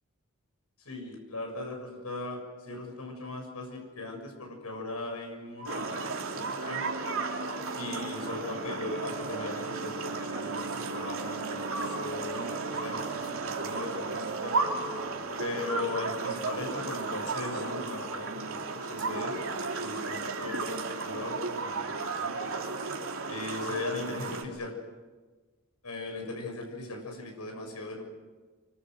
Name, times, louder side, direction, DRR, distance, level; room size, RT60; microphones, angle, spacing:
voice 1, 0.9-6.9 7.8-14.6 15.4-19.5 19.8-22.5 23.3-24.7 25.8-28.0, left 2 dB, 85° left, 2 dB, 6.9 m, -38 dB
sound 1, 5.6-16.8, right 2 dB, 35° left, 4.9 m, -45 dB
sound 2, 5.6-24.4, right 3 dB, 65° right, 3.3 m, -34 dB
27.5 x 24.5 x 8.1 m, 1.3 s
head